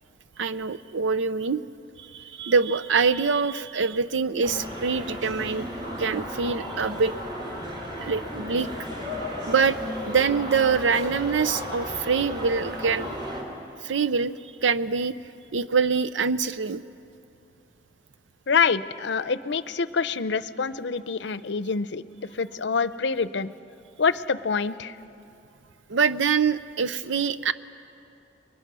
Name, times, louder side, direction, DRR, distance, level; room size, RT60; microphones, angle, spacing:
voice 1, 0.4-1.6 2.0-5.7 6.0-7.1 8.0-8.7 9.5-13.1 13.8-15.1 15.5-16.8 25.9-27.5, right 5 dB, 90° right, 14 dB, 0.7 m, -24 dB
sound 1, 4.4-13.4, left 1 dB, 25° right, 3.8 m, -34 dB
voice 2, 18.5-23.5 24.0-25.0, left 5 dB, 70° left, 15 dB, 0.6 m, -26 dB
30.0 x 23.0 x 6.2 m, 2.7 s
head